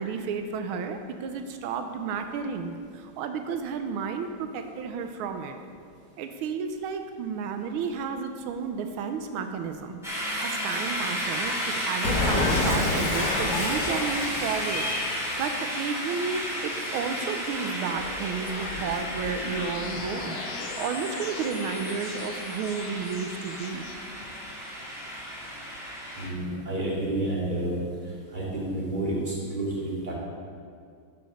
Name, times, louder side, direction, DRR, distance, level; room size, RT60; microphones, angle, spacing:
voice 1, 0.0-5.6 6.2-10.0 10.4-23.8, right 6 dB, 90° right, 7 dB, 1.5 m, -32 dB
sound 1, 10.0-26.3, equal, ahead, 1.9 m, -33 dB
Cat, 12.0-15.3, left 2 dB, 55° left, 2.0 m, -28 dB
sound 2, 18.0-24.0, left 6 dB, 90° left, 1.6 m, -40 dB
voice 2, 26.2-27.8 28.3-30.1, right 1 dB, 25° right, -6 dB, 2.5 m, -30 dB
11.5 x 5.3 x 6.3 m, 2.2 s
omnidirectional pair, 2.3 m